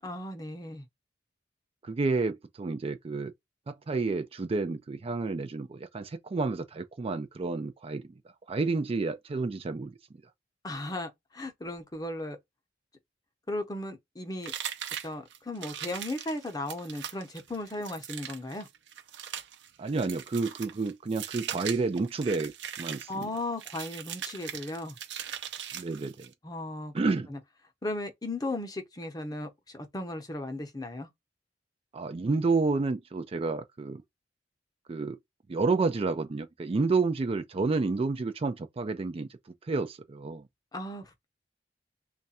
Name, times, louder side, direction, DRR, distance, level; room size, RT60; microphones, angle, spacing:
voice 1, 0.0-0.9 10.6-12.4 13.5-14.5 15.0-18.7 23.1-25.0 26.4-27.4 27.8-31.1 40.7-41.3, left 1 dB, 20° left, 0.8 m, -36 dB
voice 2, 1.8-3.3 3.7-8.1 8.5-9.9 19.8-22.5 22.8-23.3 25.7-26.3 26.9-27.3 31.9-34.0 34.9-35.2 35.5-39.3 39.7-40.4, right 3 dB, 30° right, 0.4 m, -30 dB
sound 1, 14.4-26.3, right 9 dB, 75° right, 0.7 m, -40 dB
3.3 x 2.4 x 4.1 m
head